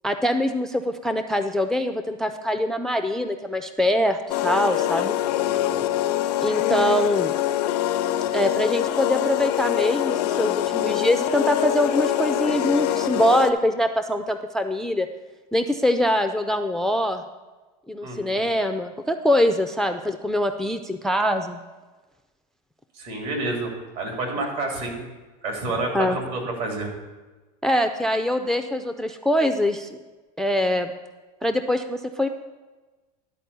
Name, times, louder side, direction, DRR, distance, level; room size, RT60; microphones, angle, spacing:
voice 1, 0.0-5.2 6.4-7.3 8.3-15.1 15.5-17.2 17.9-21.6 25.9-26.2 27.6-30.0 30.4-30.9 31.4-32.3, left 1 dB, ahead, 8 dB, 0.3 m, -23 dB
sound 1, 4.3-13.5, left 13 dB, 90° left, 0.6 m, -24 dB
voice 2, 5.5-5.9 18.0-18.4 23.0-25.0 25.4-26.9, right 2 dB, 70° right, 1 dB, 2.9 m, -29 dB
11.5 x 4.2 x 6.8 m, 1.2 s
supercardioid pair, 130°, 20 cm